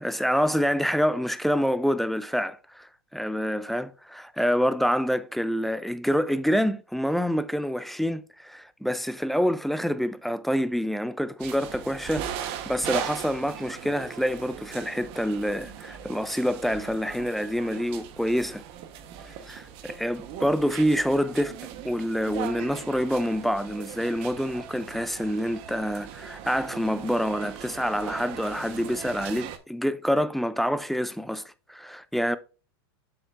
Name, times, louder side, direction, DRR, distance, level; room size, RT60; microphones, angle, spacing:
voice 1, 0.0-18.6 19.2-31.4 31.7-32.4, equal, ahead, 0.3 m, -27 dB
sound 1, 11.4-29.6, right 9 dB, 45° right, 1.0 m, -39 dB
7.6 x 7.0 x 2.4 m
supercardioid pair, 145°, 13 cm